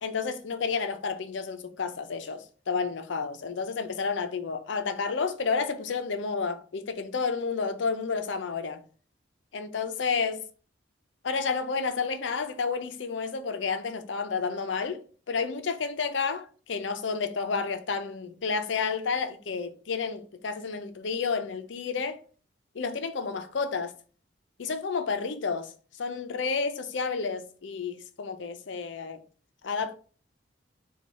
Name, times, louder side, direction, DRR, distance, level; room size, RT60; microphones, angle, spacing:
voice 1, 0.0-8.8 9.5-10.4 11.2-22.2 22.7-23.9 24.6-25.7 26.0-29.2 29.6-29.9, left 5 dB, 70° left, 0.5 m, -31 dB
4.5 x 2.3 x 4.0 m
head